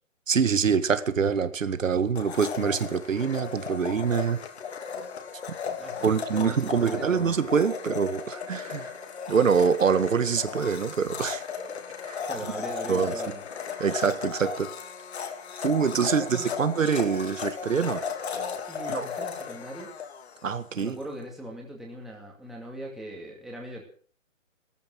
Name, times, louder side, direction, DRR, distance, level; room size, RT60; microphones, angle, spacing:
voice 1, 0.3-4.4 6.0-8.9 9.3-11.4 12.1-12.2 12.9-13.1 13.8-14.7 15.6-18.0 18.9-19.1 20.4-21.0, right 6 dB, 75° right, 11 dB, 1.9 m, -25 dB
Domestic sounds home sounds, 2.1-20.9, left 6 dB, 55° left, 2.9 m, -36 dB
voice 2, 5.8-7.5 12.3-13.4 16.0-16.5 18.7-19.9 20.8-23.8, right 1 dB, ahead, -2 dB, 2.3 m, -40 dB
16.0 x 13.5 x 6.2 m, 0.43 s
hypercardioid pair, 160°, 39 cm